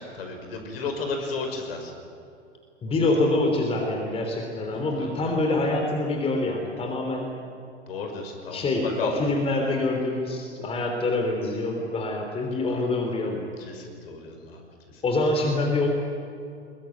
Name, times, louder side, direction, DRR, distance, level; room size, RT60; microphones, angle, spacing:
voice 1, 0.0-1.9 4.6-5.3 7.9-9.3 12.6-12.8 13.6-14.6 14.9-15.0, left 4 dB, 55° left, 4 dB, 5.7 m, -34 dB
voice 2, 2.8-7.3 8.5-13.4 15.0-15.9, left 2 dB, 15° left, 2 dB, 3.4 m, -25 dB
22.5 x 22.0 x 9.3 m, 2.5 s
figure-of-eight pair, 105°, 35 cm